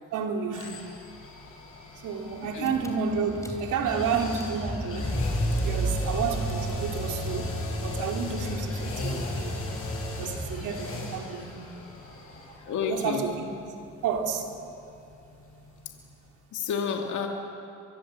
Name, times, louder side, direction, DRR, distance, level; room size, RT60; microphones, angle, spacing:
voice 1, 0.1-0.8 2.0-5.1 5.6-9.6 10.2-11.8 12.8-13.4 14.0-14.5, right 6 dB, 85° right, 3 dB, 2.9 m, -31 dB
sound 1, 0.5-16.3 16.6-16.7, left 1 dB, 45° left, 7.2 m, -39 dB
Car / Engine, 2.3-2.4 2.6-11.0, equal, 10° left, 3.5 m, -32 dB
voice 2, 12.7-13.2 16.5-17.3, left 6 dB, 75° left, 2 dB, 2.3 m, -30 dB
23.5 x 23.5 x 7.7 m, 2.7 s
cardioid pair, 90°, 30 cm